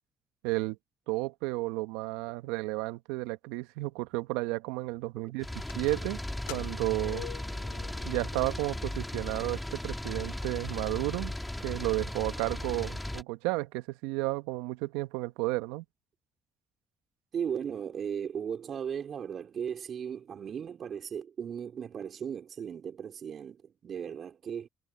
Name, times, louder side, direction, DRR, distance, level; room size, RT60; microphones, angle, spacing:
voice 1, 0.4-0.8 1.1-6.2 6.5-7.2 8.0-11.3 11.6-15.8, right 22 dB, 85° right, 1.5 m, -32 dB
sound 1, 5.4-13.2, left 1 dB, 10° left, 2.5 m, -36 dB
sound 2, 5.6-8.7 9.0-9.1 9.9-10.0 10.4-10.5 10.7-11.4, left 22 dB, 85° left, 1.3 m, -46 dB
voice 2, 17.3-24.7, right 8 dB, 55° right, 4.1 m, -36 dB
hypercardioid pair, 50°, 0 cm